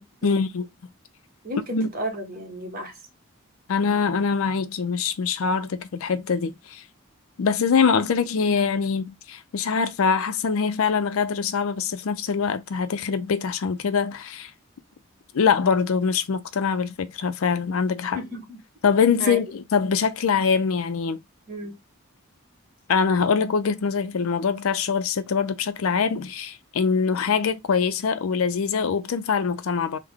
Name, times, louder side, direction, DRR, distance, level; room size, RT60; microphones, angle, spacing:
voice 1, 0.2-0.7 1.7-1.9 3.7-6.8 7.4-14.5 15.3-18.2 18.8-21.2 22.9-30.0, left 5 dB, 80° left, 0.5 m, -23 dB
voice 2, 1.4-3.0 18.1-18.6 19.2-19.4 21.5-21.8, equal, 45° right, 1.1 m, -33 dB
3.4 x 2.1 x 3.5 m
head